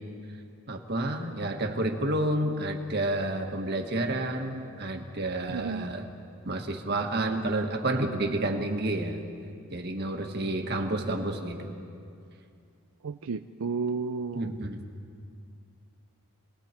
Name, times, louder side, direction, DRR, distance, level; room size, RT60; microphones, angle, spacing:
voice 1, 0.7-6.1 6.4-9.2 9.7-11.7 14.3-14.9, right 1 dB, 45° right, 3 dB, 1.7 m, -30 dB
voice 2, 5.5-5.9 13.0-14.5, right 5 dB, 80° right, 8 dB, 0.5 m, -32 dB
30.0 x 20.0 x 4.5 m, 2.5 s
head